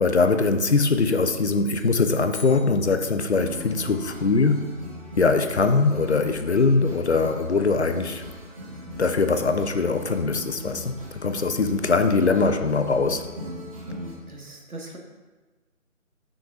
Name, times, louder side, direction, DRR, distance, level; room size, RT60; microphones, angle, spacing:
voice 1, 0.0-4.6 5.2-8.2 9.0-13.3, left 4 dB, 50° left, 8 dB, 0.5 m, -22 dB
sound 1, 1.6-3.5, left 4 dB, 15° left, 1.2 m, -46 dB
sound 2, 3.3-14.1, left 1 dB, 25° right, 0.9 m, -38 dB
voice 2, 14.3-15.0, right 2 dB, 85° right, 0 dB, 1.6 m, -40 dB
8.5 x 6.1 x 2.5 m, 1.3 s
figure-of-eight pair, 160°, 43 cm